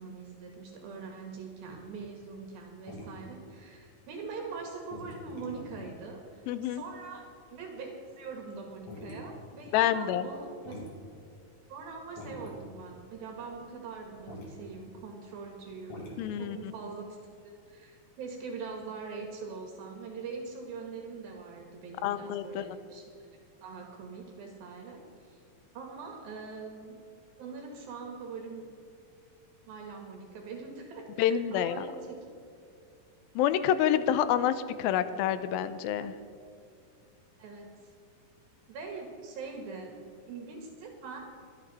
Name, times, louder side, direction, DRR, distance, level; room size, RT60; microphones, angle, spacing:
voice 1, 0.0-7.2 7.5-10.8 11.7-16.1 16.4-17.2 17.7-23.0 23.6-25.4 25.8-27.0 27.4-28.7 29.7-32.3 37.4-37.7 38.7-39.9 40.3-41.2, right 4 dB, 80° right, 2 dB, 3.5 m, -43 dB
sound 1, 1.6-2.5 2.9-4.2 4.5-4.6 4.9-5.9 6.5-6.7 7.0-7.1 7.7-8.5 8.9-9.2 9.5-9.6 10.0-10.1 10.3-10.4 10.6-14.5 15.6-16.2, left 1 dB, 45° left, 3.3 m, -46 dB
voice 2, 6.5-6.8 9.7-10.3 16.2-16.6 22.0-22.7 31.2-31.8 33.4-36.1, left 10 dB, 90° left, 12 dB, 2.4 m, -27 dB
24.0 x 8.9 x 4.2 m, 2.5 s
omnidirectional pair, 4.2 m